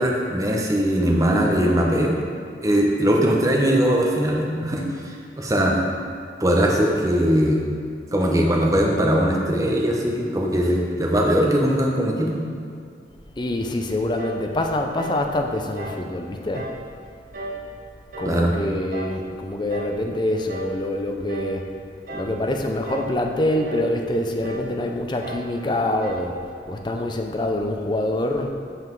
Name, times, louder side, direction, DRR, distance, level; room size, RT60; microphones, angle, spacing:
voice 1, 0.0-2.2 2.6-5.8 6.4-7.6 8.1-12.4 18.2-18.5, equal, 20° right, -1 dB, 0.8 m, -20 dB
voice 2, 13.4-16.7 18.2-21.7 22.1-26.4 26.7-28.5, left 1 dB, 25° left, 3 dB, 0.5 m, -25 dB
sound 1, 14.2-14.5 15.0-15.3 15.8-16.1 16.5-16.8 17.3-17.7 18.1-18.4 18.9-19.2 19.7-20.0 20.5-20.8 21.3-21.6 22.1-22.4 22.9-23.2 23.7-23.9 24.4-24.7 25.2-25.5 26.0-26.3, right 2 dB, 50° right, 1.0 m, -35 dB
5.8 x 5.7 x 4.6 m, 2.3 s
head